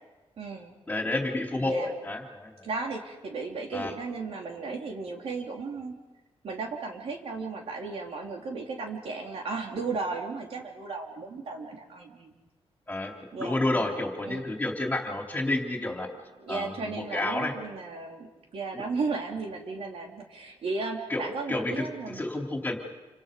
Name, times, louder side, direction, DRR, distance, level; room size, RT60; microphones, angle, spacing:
voice 1, 0.4-0.7 1.6-1.9 2.6-5.9 6.4-12.3 13.3-13.9 14.2-14.6 16.4-22.3, right 4 dB, 70° right, 1 dB, 3.6 m, -35 dB
voice 2, 0.9-2.6 3.7-3.9 12.9-13.1 13.4-16.1 16.5-17.5 18.7-18.8 21.1-21.2 21.5-22.8, left 2 dB, 15° left, 1 dB, 3.6 m, -30 dB
28.5 x 26.0 x 5.4 m, 1.2 s
wide cardioid pair, 135°, 10 cm